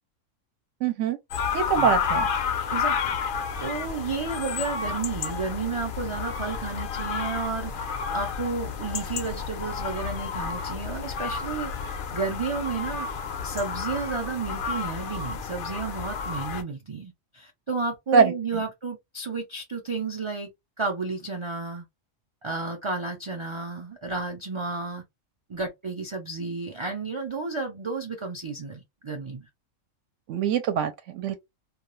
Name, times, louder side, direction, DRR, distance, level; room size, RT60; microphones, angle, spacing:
voice 1, 0.8-1.2 1.5-2.3 18.1-18.3 30.3-31.4, right 6 dB, 75° right, 0.9 m, -23 dB
sound 1, 1.3-16.6, left 6 dB, 60° left, 0.5 m, -31 dB
voice 2, 3.6-13.1 13.4-20.5 20.8-21.9 22.4-25.0 25.5-29.5, right 4 dB, 45° right, 0.3 m, -32 dB
2.3 x 2.3 x 3.0 m
omnidirectional pair, 1.3 m